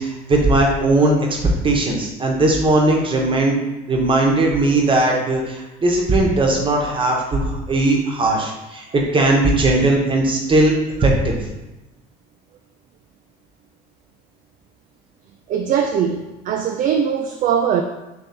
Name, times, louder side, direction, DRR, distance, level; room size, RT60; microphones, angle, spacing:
voice 1, 0.0-1.4 1.6-3.6 3.9-10.7 11.0-11.4, right 2 dB, 25° right, 0 dB, 1.1 m, -18 dB
voice 2, 15.5-17.8, right 8 dB, 45° right, 4 dB, 0.4 m, -21 dB
3.3 x 3.1 x 4.2 m, 1.0 s
supercardioid pair, 85°, 19 cm